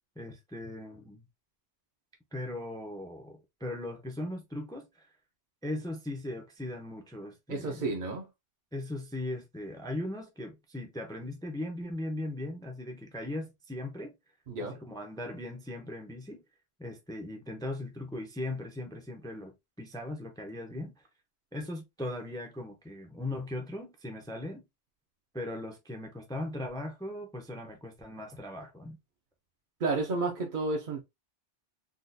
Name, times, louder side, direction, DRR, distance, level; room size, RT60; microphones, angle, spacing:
voice 1, 0.2-1.2 2.3-5.1 5.6-7.9 8.7-14.1 14.6-16.4 16.8-21.0 21.5-24.6 25.3-29.0, left 1 dB, 5° left, 0.4 m, -39 dB
voice 2, 7.5-8.3 14.5-14.8 29.8-31.0, right 3 dB, 50° right, 0.7 m, -31 dB
3.8 x 2.4 x 2.5 m
omnidirectional pair, 1.3 m